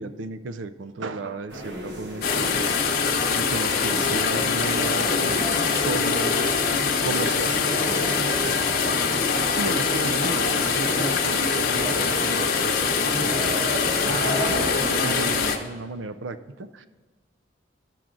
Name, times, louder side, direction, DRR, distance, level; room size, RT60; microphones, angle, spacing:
voice 1, 0.0-3.0 3.3-6.6 7.0-9.0 9.5-16.9, right 3 dB, 85° right, 12 dB, 0.5 m, -34 dB
sound 1, 1.5-15.5, equal, 65° right, 1.1 m, -36 dB
sound 2, 2.2-15.6, left 5 dB, 50° left, 0.9 m, -23 dB
sound 3, 3.2-8.5, left 3 dB, 25° right, 1.6 m, -42 dB
13.0 x 5.9 x 3.8 m, 1.4 s
head